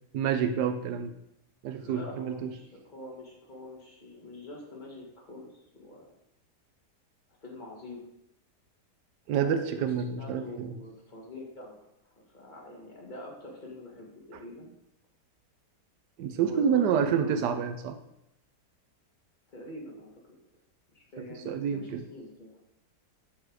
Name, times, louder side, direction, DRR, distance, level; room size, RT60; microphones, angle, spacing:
voice 1, 0.1-1.2 1.6-2.5 9.3-10.7 16.2-18.0 21.2-22.0, right 7 dB, 85° right, 8 dB, 1.3 m, -28 dB
voice 2, 1.8-6.1 7.4-8.0 9.4-9.9 10.2-14.7 16.4-17.7 19.5-20.2 20.9-22.6, left 2 dB, 25° left, -2 dB, 2.3 m, -45 dB
9.1 x 6.3 x 4.7 m, 0.81 s
omnidirectional pair, 1.8 m